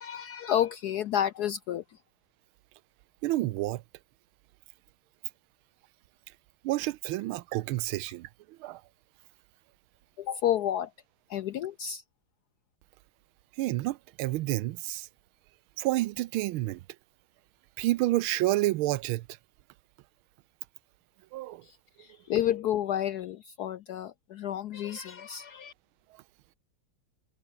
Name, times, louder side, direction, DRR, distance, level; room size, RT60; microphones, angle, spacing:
voice 1, 0.0-2.0 10.2-10.9 11.3-12.0 21.6-25.7, left 10 dB, 70° left, 0.9 m, -31 dB
voice 2, 3.2-3.8 6.6-8.8 13.6-15.1 15.8-16.8 17.8-19.3 21.3-21.6, right 17 dB, 80° right, 1.4 m, -29 dB
omnidirectional pair, 2.3 m